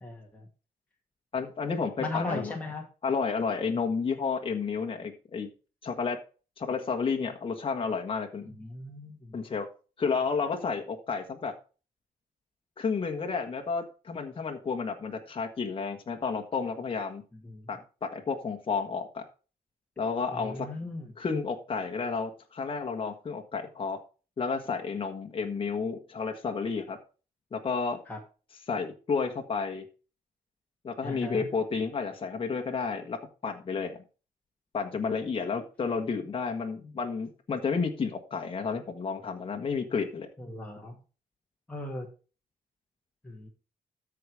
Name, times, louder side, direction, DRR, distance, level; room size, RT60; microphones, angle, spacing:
voice 1, 0.0-0.5 2.0-2.8 8.4-9.3 17.4-17.7 20.3-21.1 28.1-28.2 31.0-31.5 40.4-41.0 41.7-42.1 43.2-43.5, left 2 dB, 10° left, -1 dB, 2.0 m, -37 dB
voice 2, 1.3-2.5 3.0-5.5 5.8-6.2 6.6-8.5 9.3-9.7 10.0-11.5 12.8-17.2 17.7-19.2 20.0-20.7 21.2-24.0 24.4-27.0 27.5-28.0 28.7-29.8 30.8-34.0 34.7-40.3, left 5 dB, 35° left, 3 dB, 1.4 m, -31 dB
13.5 x 4.9 x 4.9 m, 0.35 s
cardioid pair, 105°, 15 cm